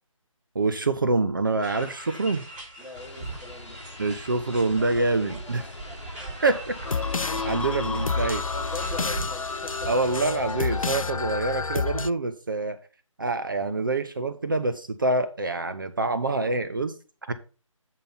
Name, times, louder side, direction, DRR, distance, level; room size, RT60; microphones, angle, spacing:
voice 1, 0.5-2.4 4.0-5.7 6.4-6.7 7.4-8.4 9.9-12.8 13.2-16.9 17.3-17.4, right 3 dB, 40° right, 0.7 m, -26 dB
sound 1, 1.6-10.3, right 2 dB, 25° right, 4.3 m, -40 dB
voice 2, 2.8-3.8 6.7-6.8 7.2-8.1 8.5-10.0, left 2 dB, ahead, 0.9 m, -41 dB
sound 2, 2.9-11.2, left 2 dB, 55° left, 1.1 m, -44 dB
sound 3, 6.8-12.1, left 5 dB, 85° left, 0.4 m, -29 dB
7.6 x 5.1 x 5.7 m
figure-of-eight pair, 155°, 17 cm